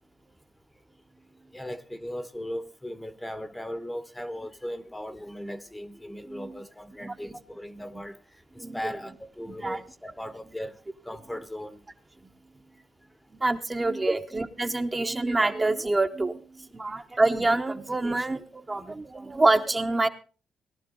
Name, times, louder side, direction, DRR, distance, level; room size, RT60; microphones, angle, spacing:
voice 1, 1.5-8.2 8.5-10.8 11.0-11.8 14.1-14.2 18.8-18.9, equal, 10° left, 1.0 m, -37 dB
voice 2, 6.3-6.6 7.0-7.4 8.6-8.8 9.5-9.8 13.4-20.1, right 2 dB, 20° right, 0.9 m, -26 dB
18.0 x 11.5 x 3.9 m
cardioid pair, 90°, 0 cm